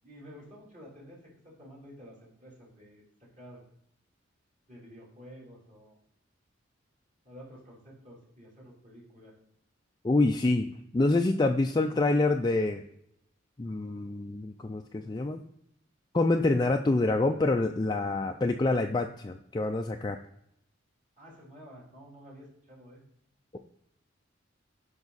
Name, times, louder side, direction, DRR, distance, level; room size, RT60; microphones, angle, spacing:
voice 1, 0.0-3.0 3.4-3.6 4.7-6.0 7.2-9.3 21.2-23.0, equal, 40° right, -5 dB, 3.5 m, -50 dB
voice 2, 10.0-10.7 10.9-12.8 13.6-15.4 16.1-20.2, left 2 dB, 20° left, 4 dB, 0.4 m, -26 dB
12.0 x 5.3 x 4.1 m, 0.75 s
head